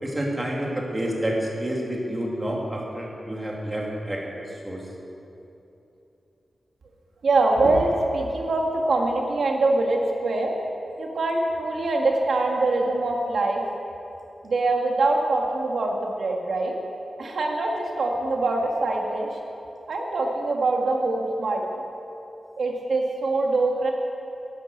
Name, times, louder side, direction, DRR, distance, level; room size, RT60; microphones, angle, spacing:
voice 1, 0.0-4.2 4.6-4.8, right 1 dB, 20° right, -2 dB, 2.6 m, -28 dB
voice 2, 7.2-10.5 11.0-13.6 14.4-16.8 17.2-19.3 19.9-21.6 22.6-23.9, right 2 dB, 75° right, 0 dB, 1.6 m, -23 dB
12.0 x 12.0 x 7.9 m, 2.9 s
wide cardioid pair, 125°, 0 cm